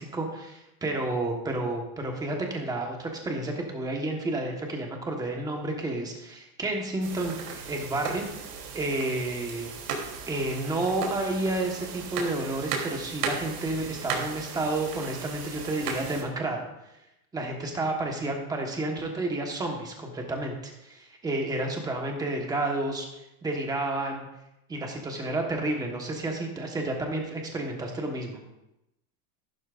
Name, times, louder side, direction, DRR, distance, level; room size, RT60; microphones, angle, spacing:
voice 1, 0.0-8.2 8.7-9.7 10.3-16.6 17.3-23.1 23.4-24.3 24.7-28.4, right 2 dB, 10° right, 1 dB, 1.3 m, -30 dB
sound 1, 7.0-16.2, right 5 dB, 80° right, 3.3 m, -36 dB
14.0 x 12.0 x 2.5 m, 0.88 s
supercardioid pair, 165°, 46 cm